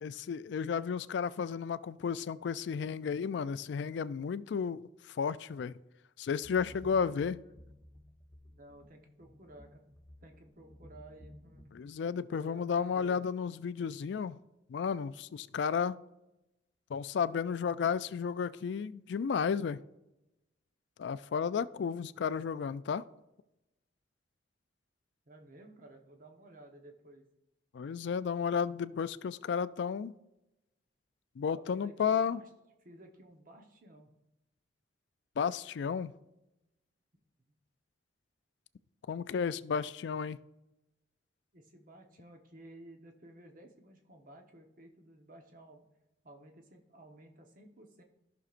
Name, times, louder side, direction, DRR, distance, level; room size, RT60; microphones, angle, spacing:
voice 1, 0.0-5.8 6.2-7.4 11.7-14.4 14.7-16.0 16.9-19.8 21.0-23.0 27.7-30.1 31.4-32.4 35.4-36.1 39.1-40.4, left 6 dB, 65° left, 16 dB, 0.3 m, -33 dB
sound 1, 6.4-11.7, left 1 dB, 20° left, 1.1 m, -55 dB
voice 2, 7.0-7.4 8.5-9.9 10.2-11.6 12.3-13.3 25.3-27.2 31.5-32.5 32.8-34.1 41.5-45.8 46.2-48.0, right 1 dB, 45° right, 3 dB, 1.1 m, -55 dB
14.5 x 6.1 x 2.5 m, 0.94 s
head